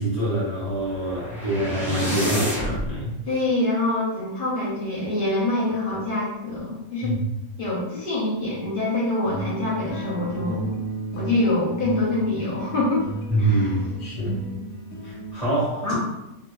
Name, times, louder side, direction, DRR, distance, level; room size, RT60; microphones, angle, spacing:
voice 1, 0.0-3.4 7.0-7.3 13.3-14.4 15.0-15.9, right 1 dB, 30° left, -9 dB, 1.2 m, -25 dB
sound 1, 0.7-2.9, equal, 5° right, 0.4 m, -29 dB
voice 2, 3.3-7.1 7.6-10.7 11.2-13.1 13.4-13.7 15.8-15.9, left 2 dB, 45° left, -7 dB, 0.8 m, -25 dB
sound 2, 9.2-15.3, right 2 dB, 90° left, 1.0 m, -33 dB
2.9 x 2.5 x 2.3 m, 0.89 s
omnidirectional pair, 1.5 m